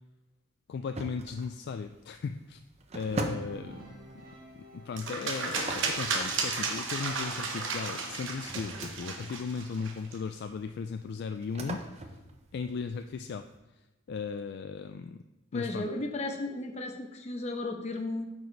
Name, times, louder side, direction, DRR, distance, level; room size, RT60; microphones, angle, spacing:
voice 1, 0.7-2.6 2.9-3.9 4.7-12.2 12.5-13.5 14.1-15.2 15.5-15.9, left 5 dB, 55° left, 8 dB, 0.3 m, -36 dB
sound 1, 0.9-13.6, right 2 dB, 30° right, 0.7 m, -43 dB
sound 2, 2.9-9.2, equal, 45° right, 1.5 m, -50 dB
sound 3, 5.0-10.2, right 4 dB, 65° right, 1.0 m, -33 dB
voice 2, 15.5-18.2, left 2 dB, 35° left, 4 dB, 0.8 m, -34 dB
9.1 x 4.8 x 4.0 m, 1.1 s
head